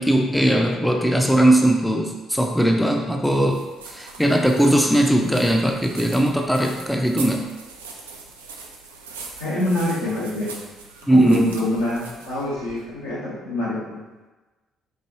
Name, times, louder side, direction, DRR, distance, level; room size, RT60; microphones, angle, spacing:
voice 1, 0.0-7.5 11.1-11.4, right 1 dB, 5° left, 2 dB, 0.5 m, -19 dB
sound 1, 3.2-13.1, right 4 dB, 80° right, 0.3 m, -41 dB
voice 2, 5.0-5.3 9.4-10.5 11.1-14.0, left 1 dB, 80° left, -8 dB, 1.1 m, -25 dB
4.6 x 2.5 x 3.0 m, 1.2 s
figure-of-eight pair, 45°, 0 cm